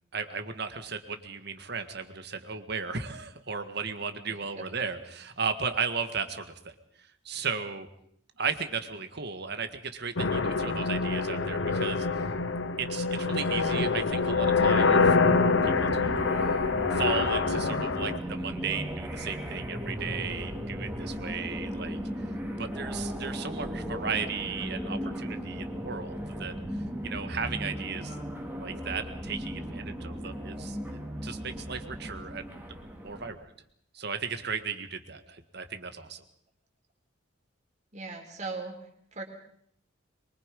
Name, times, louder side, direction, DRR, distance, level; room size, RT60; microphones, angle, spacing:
voice 1, 0.1-6.7 7.3-7.9 8.4-12.3 12.8-16.5 16.9-22.0 22.6-26.5 27.0-28.2 28.6-30.8 31.2-32.7 33.0-33.5 33.9-36.2, right 5 dB, 55° right, 8 dB, 1.8 m, -35 dB
sound 1, 10.2-18.2, left 4 dB, 65° left, 1.0 m, -25 dB
sound 2, 14.1-33.3, equal, 10° right, 2.9 m, -36 dB
voice 2, 37.9-39.2, right 3 dB, 35° right, 3 dB, 4.0 m, -39 dB
24.0 x 23.5 x 5.4 m, 0.68 s
head